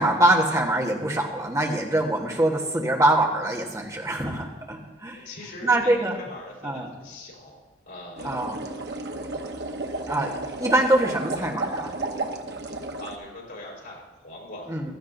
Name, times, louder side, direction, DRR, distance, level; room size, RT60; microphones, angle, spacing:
voice 1, 0.0-5.2 5.6-6.1 6.6-6.9 8.2-8.6 10.1-10.3 10.6-11.9 14.7-14.9, right 1 dB, 20° right, -1 dB, 1.3 m, -23 dB
voice 2, 5.2-7.6 7.9-8.4 12.9-14.9, left 1 dB, 85° left, -3 dB, 4.4 m, -42 dB
sound 1, 8.2-13.2, right 2 dB, 70° right, 0.9 m, -33 dB
16.0 x 13.0 x 2.7 m, 1.2 s
head